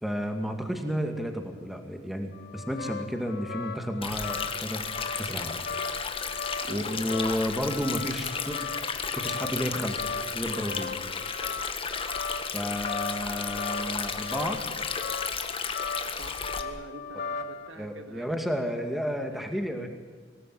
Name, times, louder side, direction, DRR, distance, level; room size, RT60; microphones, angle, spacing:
voice 1, 0.0-4.8 5.2-5.6 6.7-8.7 9.2-10.0 10.3-10.9 12.5-14.6 17.8-19.9, equal, ahead, 5 dB, 2.3 m, -32 dB
sound 1, 2.3-17.7, left 5 dB, 55° left, 2.3 m, -38 dB
Stream, 4.0-16.6, left 5 dB, 30° left, 1.6 m, -34 dB
voice 2, 6.6-7.0 16.2-18.3 19.3-19.4, right 1 dB, 65° right, 7 dB, 2.2 m, -45 dB
25.0 x 18.0 x 9.4 m, 1.5 s
head